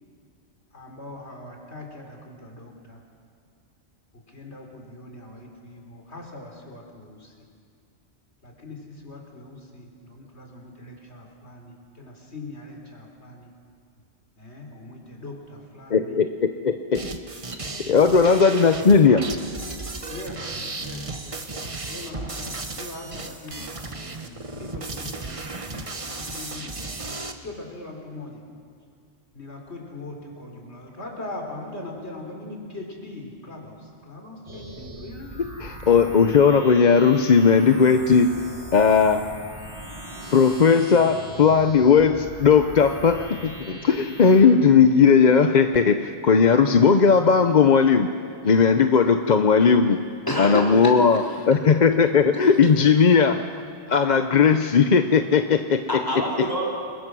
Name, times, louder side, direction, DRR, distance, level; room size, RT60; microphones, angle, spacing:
voice 1, 0.7-3.0 4.1-7.5 8.4-13.5 14.4-16.2 17.9-18.2 20.0-28.4 29.3-35.3, left 2 dB, 70° left, 1 dB, 3.8 m, -41 dB
voice 2, 15.9-17.0 17.9-19.3 35.6-38.4 38.7-39.3 40.3-48.1 48.4-50.0 50.4-53.4 53.9-55.8, left 5 dB, 45° left, 8 dB, 0.8 m, -17 dB
sound 1, 16.9-27.3, right 3 dB, 30° right, 1.2 m, -35 dB
sound 2, 34.5-44.4, right 1 dB, 90° right, 4.4 m, -40 dB
voice 3, 50.3-50.9 51.2-51.3 55.9-56.7, equal, 20° left, -3 dB, 3.9 m, -26 dB
29.0 x 21.0 x 6.2 m, 2.3 s
omnidirectional pair, 1.2 m